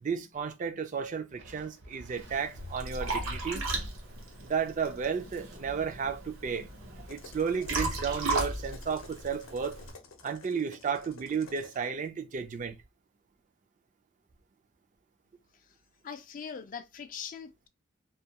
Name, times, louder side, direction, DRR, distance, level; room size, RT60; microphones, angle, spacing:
voice 1, 0.0-3.6 4.4-6.7 7.1-9.8 10.2-12.8, right 6 dB, 40° right, 0.3 m, -33 dB
Thunder, 1.3-10.0, equal, 60° right, 0.7 m, -53 dB
Liquid, 2.2-9.9, right 2 dB, 90° right, 0.8 m, -36 dB
sound 1, 7.1-11.9, left 3 dB, 80° left, 0.6 m, -51 dB
voice 2, 16.0-17.7, left 7 dB, 40° left, 0.3 m, -41 dB
2.3 x 2.2 x 2.8 m
head